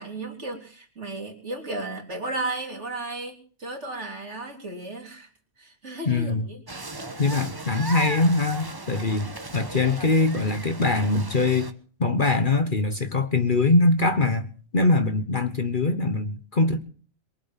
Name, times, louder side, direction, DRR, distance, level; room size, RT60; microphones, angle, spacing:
voice 1, 0.0-5.3 5.6-6.7, right 2 dB, 55° right, 3.7 m, -34 dB
voice 2, 6.1-6.5 7.2-11.7 12.0-16.8, left 3 dB, 40° left, 1.3 m, -23 dB
sound 1, 6.7-11.7, right 2 dB, 20° right, 1.1 m, -37 dB
23.0 x 8.1 x 7.3 m
omnidirectional pair, 1.4 m